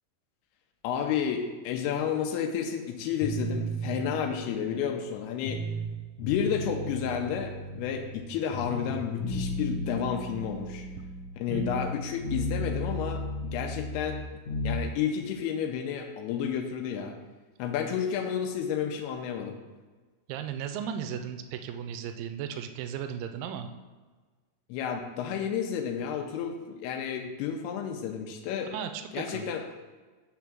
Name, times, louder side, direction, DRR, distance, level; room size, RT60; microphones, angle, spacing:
voice 1, 0.8-5.6 6.2-10.9 11.4-14.2 14.6-17.1 17.6-19.6 24.7-28.7 29.1-29.6, left 8 dB, 90° left, 3 dB, 2.6 m, -31 dB
sound 1, 3.2-5.9 6.2-8.3 8.5-11.9 12.2-14.8, equal, 65° left, 2.2 m, -34 dB
voice 2, 20.3-23.7 28.7-29.5, right 8 dB, 85° right, 7 dB, 2.0 m, -36 dB
6.4 x 3.4 x 6.0 m, 1.3 s
omnidirectional pair, 4.5 m